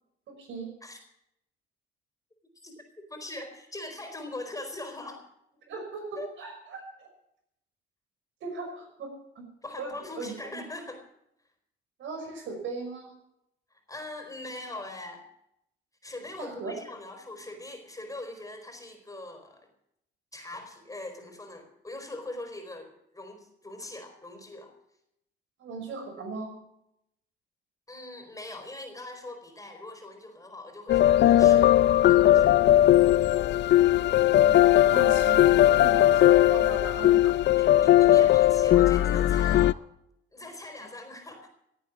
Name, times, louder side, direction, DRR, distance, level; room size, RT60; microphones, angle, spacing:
voice 1, 0.3-0.7 5.7-7.1 8.4-9.5 9.8-10.6 12.0-13.2 16.4-16.8 25.6-26.5 34.3-37.3, right 4 dB, 75° right, 3 dB, 5.5 m, -38 dB
voice 2, 3.1-5.2 6.2-6.3 9.6-11.0 13.7-15.2 16.0-19.7 20.3-24.7 27.9-31.8 32.1-32.5 37.6-39.8 40.3-41.5, left 2 dB, 15° left, 4 dB, 4.4 m, -41 dB
sound 1, 30.9-39.7, left 13 dB, 60° left, 0.5 m, -19 dB
16.5 x 9.0 x 8.4 m, 0.80 s
cardioid pair, 90°, 20 cm